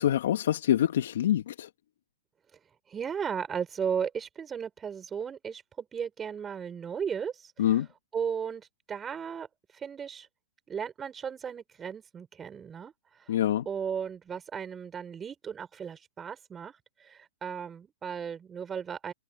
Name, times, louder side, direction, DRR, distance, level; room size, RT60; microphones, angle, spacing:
voice 1, 0.0-1.7 7.6-7.9 13.3-13.6, left 11 dB, 70° left, 1.8 m, -25 dB
voice 2, 2.9-9.5 9.7-10.3 10.7-13.3 13.6-19.1, right 7 dB, 20° right, 6.3 m, -36 dB
hypercardioid pair, 125°, 0 cm